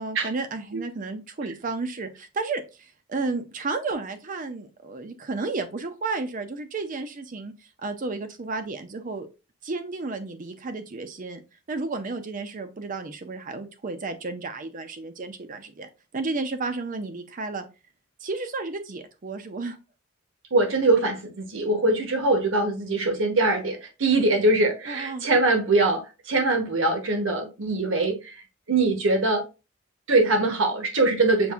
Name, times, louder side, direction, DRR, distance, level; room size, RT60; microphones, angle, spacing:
voice 1, 0.0-7.5 7.8-9.3 9.6-11.4 11.7-15.9 16.1-17.6 18.2-19.8 24.9-25.2, right 3 dB, 40° right, 0.5 m, -32 dB
voice 2, 20.5-29.4 30.1-31.5, right 2 dB, 65° right, 1.0 m, -23 dB
6.8 x 2.6 x 2.4 m
head